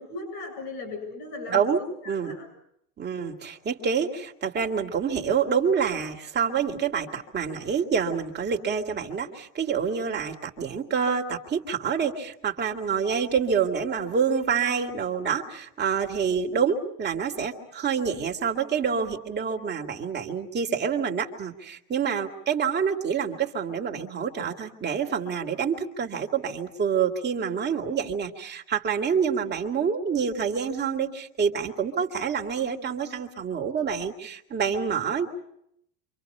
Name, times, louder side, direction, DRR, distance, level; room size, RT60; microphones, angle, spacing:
voice 1, 0.0-2.5, left 3 dB, 55° left, 5 dB, 7.6 m, -38 dB
voice 2, 1.5-2.3 3.0-35.3, right 6 dB, 20° right, 1 dB, 2.4 m, -27 dB
28.5 x 26.0 x 5.6 m, 0.74 s
supercardioid pair, 140°, 47 cm